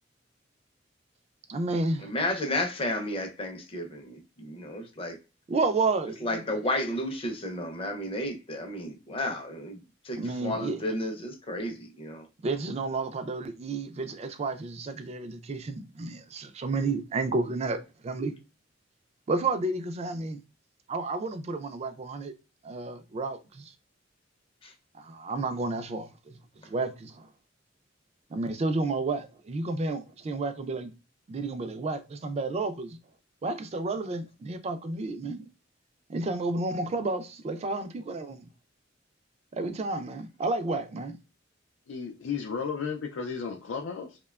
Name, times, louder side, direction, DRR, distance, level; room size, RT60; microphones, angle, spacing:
voice 1, 1.5-2.1 5.5-6.6 10.2-10.8 12.4-17.8 18.0-18.3 19.3-20.4 20.9-22.3 22.6-23.7 24.9-26.4 26.6-27.3 28.3-30.9 31.3-33.0 33.4-35.4 36.1-38.4 39.5-41.1, right 3 dB, 35° right, 0.3 m, -31 dB
voice 2, 2.0-5.2 6.2-12.3 24.6-24.7, left 1 dB, 30° left, 0.5 m, -32 dB
voice 3, 41.9-44.2, left 6 dB, 90° left, 0.4 m, -34 dB
2.7 x 2.2 x 2.2 m
head